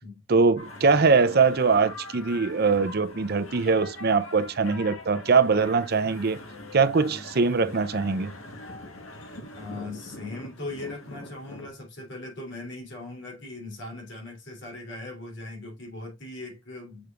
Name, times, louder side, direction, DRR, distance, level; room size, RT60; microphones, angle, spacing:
voice 1, 0.3-6.4 6.7-8.3, right 4 dB, 50° right, 0.6 m, -22 dB
sound 1, 0.6-11.7, left 2 dB, 85° left, 1.6 m, -42 dB
voice 2, 9.5-17.1, left 2 dB, 60° left, 3.3 m, -39 dB
6.8 x 6.1 x 2.5 m
head